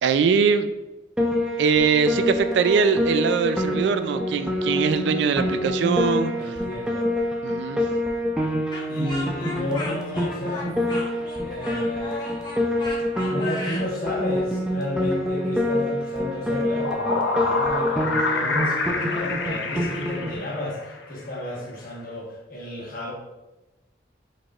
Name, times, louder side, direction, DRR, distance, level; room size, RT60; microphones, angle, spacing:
voice 1, 0.0-0.7 1.6-6.6 7.4-7.8, right 6 dB, 75° right, 10 dB, 0.3 m, -22 dB
Piano, 1.2-20.4, left 1 dB, 5° right, 0.4 m, -27 dB
voice 2, 1.9-2.3 6.4-7.1 8.9-10.7 11.4-12.8 13.2-23.1, left 1 dB, 50° left, -3 dB, 1.2 m, -32 dB
Speech, 8.7-13.9, left 2 dB, 25° left, 0.8 m, -35 dB
sound 1, 16.5-21.0, left 3 dB, 75° left, 0.5 m, -27 dB
4.8 x 4.1 x 2.4 m, 1.0 s
head